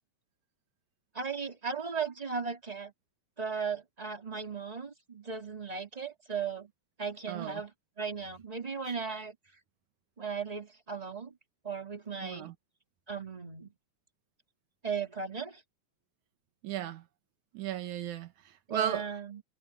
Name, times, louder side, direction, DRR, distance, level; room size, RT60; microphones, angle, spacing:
voice 1, 1.1-2.9 3.4-6.7 7.0-7.7 8.0-9.4 10.2-11.3 11.6-12.5 13.1-13.7 14.8-15.6 18.7-19.4, right 5 dB, 15° right, 2.4 m, -36 dB
voice 2, 7.3-7.6 12.2-12.5 16.6-17.0 17.5-19.1, right 11 dB, 80° right, 2.7 m, -35 dB
omnidirectional pair, 3.4 m